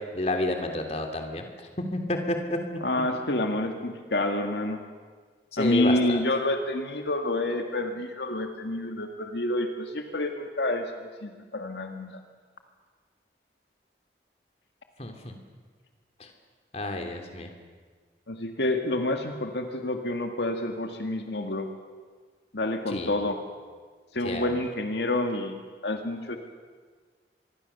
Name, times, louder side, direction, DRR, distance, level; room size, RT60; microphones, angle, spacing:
voice 1, 0.1-1.5 1.9-2.6 5.5-6.2 15.0-15.4 16.2-16.3 16.7-17.5 22.9-23.1 24.2-24.5, left 1 dB, 35° left, 5 dB, 2.8 m, -30 dB
voice 2, 2.8-4.8 5.6-12.2 18.3-21.7 22.5-23.4 24.1-26.4, left 1 dB, 75° left, 5 dB, 2.0 m, -28 dB
26.0 x 22.5 x 6.9 m, 1.5 s
head